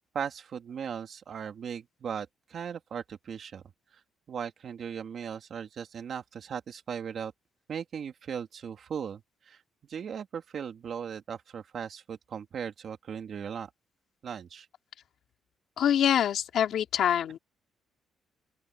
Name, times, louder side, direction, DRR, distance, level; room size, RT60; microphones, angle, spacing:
voice 1, 0.1-3.6 3.9-4.0 4.3-7.3 7.7-9.6 9.9-13.7 14.2-14.7, right 7 dB, 50° right, 2.5 m, -38 dB
voice 2, 15.8-17.4, left 9 dB, 65° left, 2.4 m, -25 dB
open air
cardioid pair, 135°, 0 cm